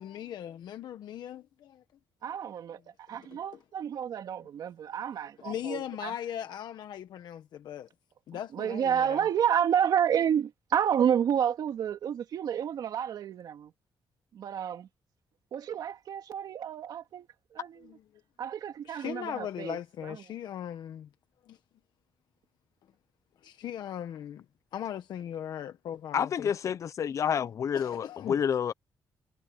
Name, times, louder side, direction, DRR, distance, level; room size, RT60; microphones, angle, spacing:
voice 1, 0.0-1.8 3.1-3.4 5.4-7.9 8.3-9.2 17.8-18.0 18.8-21.1 21.5-21.6 23.4-24.4 24.7-26.5 27.7-28.4, left 10 dB, 70° left, 1.1 m, -39 dB
voice 2, 2.2-6.1 8.5-13.7 14.3-14.9 15.5-17.9 18.4-19.8 20.1-20.2, right 9 dB, 60° right, 2.7 m, -30 dB
voice 3, 26.1-28.7, left 8 dB, 45° left, 0.5 m, -29 dB
wide cardioid pair, 175°, 8 cm